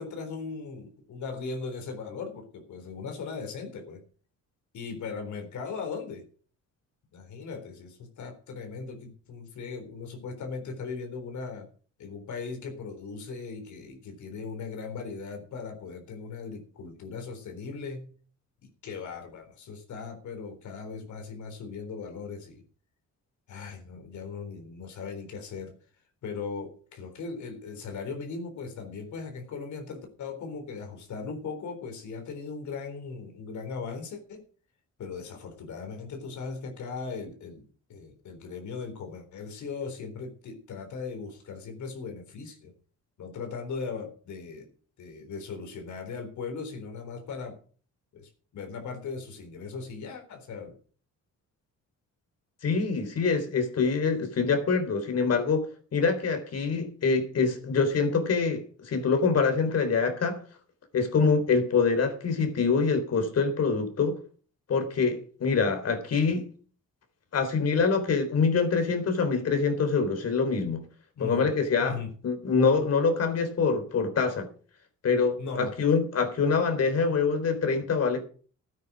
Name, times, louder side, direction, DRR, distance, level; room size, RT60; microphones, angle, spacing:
voice 1, 0.0-4.0 4.7-6.2 7.1-11.7 12.0-18.1 18.8-22.6 23.5-25.7 26.2-34.5 35.0-42.7 43.2-44.7 45.0-47.6 48.1-50.7 71.2-71.5 71.8-72.1 75.4-75.7, left 4 dB, 70° left, 4 dB, 3.9 m, -38 dB
voice 2, 52.6-60.4 60.9-64.2 64.7-66.5 67.3-70.8 71.2-72.0 72.2-74.5 75.0-78.2, left 5 dB, 55° left, 7 dB, 3.7 m, -25 dB
13.0 x 9.3 x 6.1 m, 0.42 s
cardioid pair, 90°, 30 cm